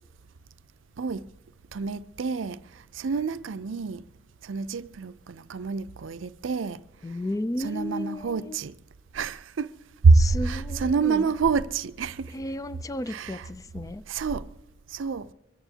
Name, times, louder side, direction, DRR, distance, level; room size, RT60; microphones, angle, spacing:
voice 1, 1.0-1.3 1.7-4.0 4.4-6.8 7.1-7.2 7.6-8.8 9.1-9.7 10.0-12.3 13.1-13.5 14.1-14.5 14.9-15.3, right 4 dB, 75° right, 0.5 m, -26 dB
voice 2, 7.0-8.6 10.1-11.3 12.3-14.0, left 1 dB, 20° left, 0.4 m, -33 dB
24.0 x 16.0 x 2.8 m
head